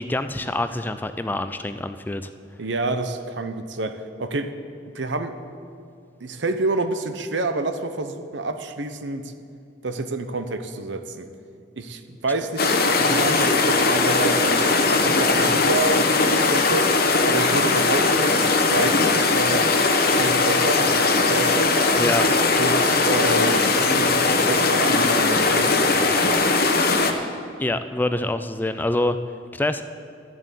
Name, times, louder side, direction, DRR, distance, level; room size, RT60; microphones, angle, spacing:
voice 1, 0.0-2.3 22.0-22.3 27.6-29.2 29.5-29.8, left 1 dB, 10° left, 10 dB, 0.3 m, -25 dB
voice 2, 2.6-4.5 4.9-5.4 6.2-9.3 9.8-11.3 11.8-14.7 15.0-16.9 17.2-19.7 20.2-21.0 21.3-21.8 22.6-26.5, right 2 dB, 70° right, 9 dB, 0.8 m, -28 dB
sound 1, 12.6-27.1, left 3 dB, 50° left, 1.0 m, -19 dB
12.5 x 7.5 x 8.3 m, 2.5 s
head